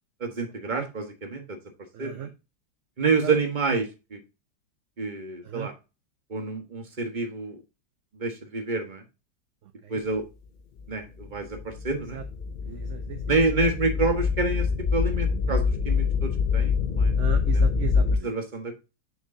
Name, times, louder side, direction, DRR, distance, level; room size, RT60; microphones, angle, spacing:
voice 1, 0.2-1.6 2.0-2.3 3.0-4.2 5.0-5.7 6.3-7.6 8.1-9.0 9.9-10.2 10.9-11.6 11.8-12.2 13.3-14.7 14.9-17.1 18.2-18.8, right 3 dB, 30° right, 5 dB, 1.5 m, -28 dB
voice 2, 1.9-2.3 3.2-3.3 5.4-5.7 9.6-10.0 12.1-12.2 12.6-13.7 17.2-18.3, right 9 dB, 55° right, 7 dB, 0.9 m, -36 dB
sound 1, 11.2-18.2, left 5 dB, 60° left, 0.5 m, -25 dB
7.4 x 6.5 x 2.7 m, 0.28 s
omnidirectional pair, 1.9 m